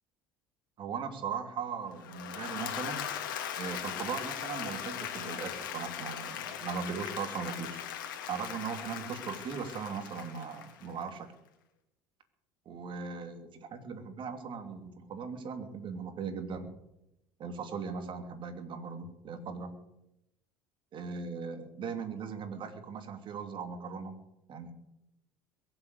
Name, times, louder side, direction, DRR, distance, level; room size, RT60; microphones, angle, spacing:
voice 1, 0.8-3.0 3.6-7.8 8.3-11.3 12.6-16.7 17.4-19.7 20.9-24.2 24.5-24.7, right 5 dB, 50° right, 7 dB, 3.0 m, -39 dB
Applause / Crowd, 1.9-11.1, left 9 dB, 85° left, 2.6 m, -39 dB
22.0 x 7.8 x 8.3 m, 0.86 s
hypercardioid pair, 80°, 11 cm